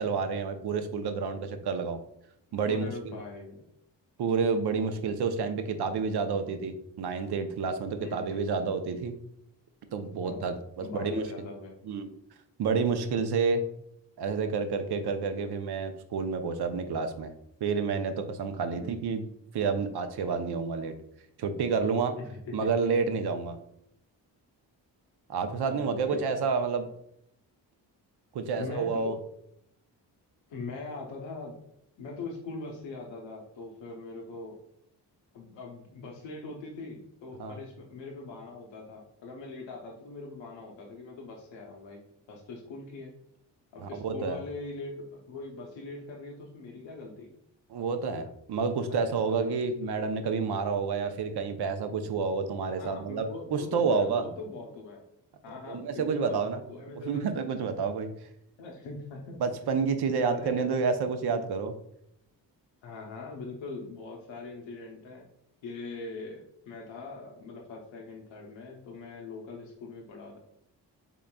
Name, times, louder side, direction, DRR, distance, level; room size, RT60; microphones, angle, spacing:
voice 1, 0.0-2.0 2.5-2.9 4.2-9.2 9.9-11.3 11.9-12.1 12.6-13.6 14.2-17.3 17.6-19.2 19.5-20.9 21.4-22.2 22.5-23.6 25.3-26.9 28.3-29.2 37.4-37.6 43.8-44.4 47.7-54.2 55.6-58.1 59.4-61.7, right 5 dB, 65° right, 8 dB, 0.6 m, -29 dB
voice 2, 2.6-3.6 8.0-8.4 10.2-10.5 10.8-11.7 18.7-18.9 22.2-22.9 25.6-26.6 28.6-29.2 30.5-31.6 32.0-34.6 35.3-42.0 42.3-43.1 43.7-47.3 48.8-49.7 52.8-55.0 55.4-57.2 58.6-59.4 60.2-60.7 62.8-65.3 65.6-70.4, left 3 dB, 85° left, -1 dB, 0.7 m, -41 dB
3.8 x 3.7 x 2.2 m, 0.74 s
cardioid pair, 60°, 44 cm